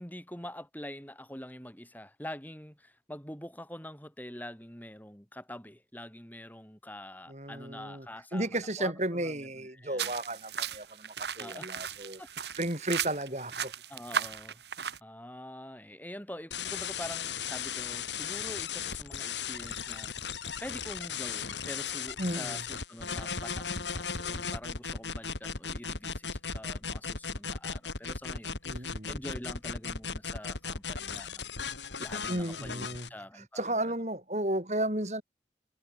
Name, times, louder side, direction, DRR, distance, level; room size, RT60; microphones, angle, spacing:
voice 1, 0.0-10.1 11.4-11.7 12.2-12.3 13.9-14.6 15.0-31.5 32.0-33.9, left 1 dB, 10° left, 7.9 m, -45 dB
voice 2, 7.3-8.1 8.3-12.2 12.6-13.7 22.2-22.6 28.6-29.1 32.3-33.1 33.6-35.2, right 1 dB, 40° right, 6.3 m, -33 dB
sound 1, 10.0-15.0, right 7 dB, 75° right, 3.1 m, -36 dB
sound 2, 16.5-33.1, left 6 dB, 85° left, 3.8 m, -36 dB
head